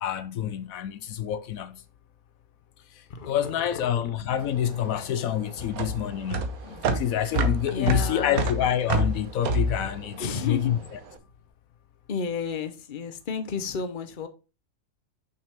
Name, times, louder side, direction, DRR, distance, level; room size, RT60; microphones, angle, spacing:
voice 1, 0.0-1.8 2.9-6.5 6.9-10.8, left 10 dB, 80° left, 1.1 m, -27 dB
voice 2, 3.1-4.2 5.6-5.7 7.7-8.5 10.2-10.7 12.1-14.3, left 6 dB, 40° left, 0.9 m, -32 dB
sound 1, 3.8-11.5, left 4 dB, 60° left, 1.7 m, -51 dB
sound 2, 4.4-10.9, right 2 dB, 80° right, 1.4 m, -28 dB
6.6 x 5.8 x 3.5 m
omnidirectional pair, 1.5 m